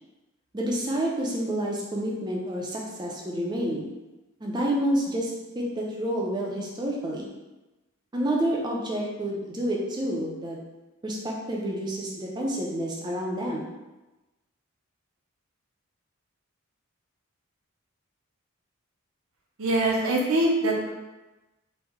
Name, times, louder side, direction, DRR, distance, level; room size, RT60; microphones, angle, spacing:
voice 1, 0.5-3.9 4.4-7.3 8.1-10.6 11.0-13.7, right 1 dB, 20° right, -2 dB, 0.4 m, -29 dB
voice 2, 19.6-20.9, right 1 dB, 75° right, -1 dB, 0.6 m, -23 dB
3.0 x 2.1 x 3.5 m, 1.1 s
head